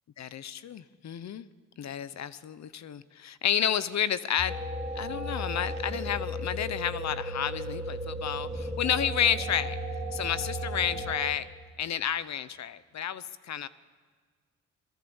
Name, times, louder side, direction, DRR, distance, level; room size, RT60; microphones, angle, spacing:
voice 1, 0.2-1.5 1.8-4.6 4.9-9.8 10.1-11.5 11.8-13.7, left 9 dB, 60° left, 16 dB, 1.0 m, -31 dB
sound 1, 4.4-11.1, left 1 dB, 20° left, 5.2 m, -38 dB
sound 2, 4.5-11.3, right 2 dB, 10° right, 2.6 m, -37 dB
22.5 x 21.5 x 7.2 m, 1.6 s
supercardioid pair, 65°, 31 cm